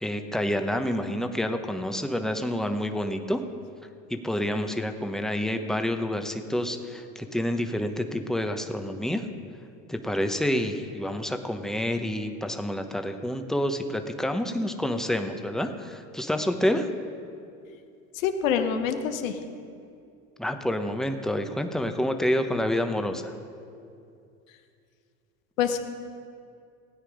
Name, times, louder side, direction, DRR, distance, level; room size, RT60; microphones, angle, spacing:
voice 1, 0.0-3.4 4.1-9.3 9.9-16.9 20.4-23.3, left 1 dB, ahead, 6 dB, 1.1 m, -28 dB
voice 2, 18.1-19.4 25.6-25.8, left 8 dB, 85° left, 8 dB, 1.2 m, -26 dB
16.5 x 9.5 x 5.0 m, 2.5 s
hypercardioid pair, 75°, 39 cm